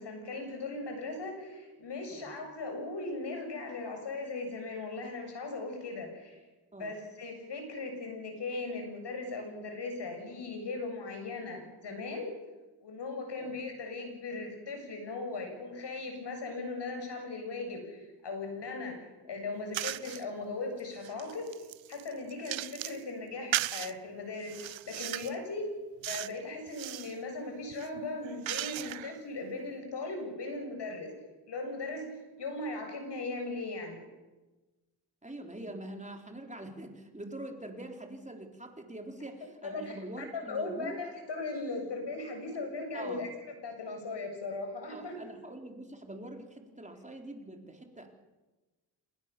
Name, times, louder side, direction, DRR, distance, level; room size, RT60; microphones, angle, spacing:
voice 1, 0.0-6.4 6.8-12.3 12.8-19.0 19.3-21.5 21.9-25.7 26.0-31.1 31.5-32.1 32.4-34.0 39.6-43.3 43.6-45.2, left 3 dB, 65° left, 4 dB, 7.5 m, -38 dB
sound 1, 19.7-20.2 20.8-23.0 23.5-23.9 24.4-25.4 26.0-26.4 26.7-27.1 27.7-29.2, right 15 dB, 85° right, 0.7 m, -36 dB
voice 2, 35.2-41.0 42.9-43.2 44.9-48.1, right 1 dB, 15° right, 3 dB, 4.2 m, -44 dB
27.5 x 21.0 x 7.1 m, 1.2 s
cardioid pair, 75°, 45 cm